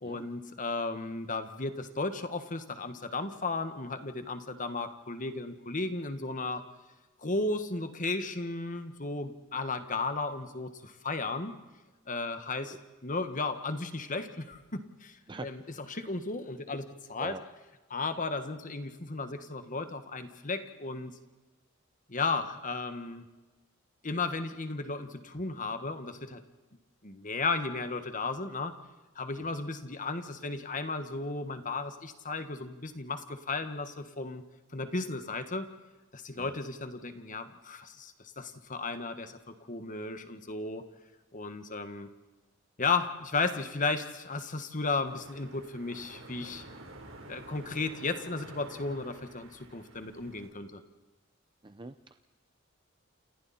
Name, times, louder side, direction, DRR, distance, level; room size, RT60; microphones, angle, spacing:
voice 1, 0.0-6.7 7.2-11.5 12.1-12.8 13.0-17.4 17.9-21.1 22.1-23.2 24.0-26.4 27.0-28.8 29.1-34.4 34.7-35.7 36.1-40.9 41.3-42.1 42.8-46.6 47.3-50.8, left 3 dB, 40° left, 9 dB, 1.7 m, -34 dB
sound 1, 45.0-50.5, right 2 dB, 75° right, 4.2 m, -50 dB
voice 2, 51.6-51.9, right 3 dB, 25° right, 10 dB, 0.6 m, -42 dB
29.0 x 28.5 x 4.4 m, 1.2 s
head